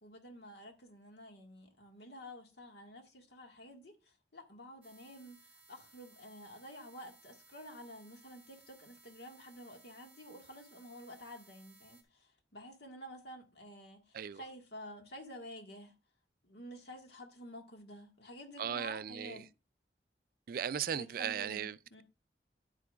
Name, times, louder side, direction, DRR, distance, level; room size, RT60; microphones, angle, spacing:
voice 1, 0.0-15.9 16.4-19.5 20.9-22.0, equal, 65° left, 1.7 m, -50 dB
sound 1, 4.8-12.0, right 3 dB, 10° right, 1.5 m, -62 dB
voice 2, 18.6-19.4 20.5-22.0, right 8 dB, 50° right, 0.3 m, -37 dB
9.9 x 8.3 x 2.4 m
head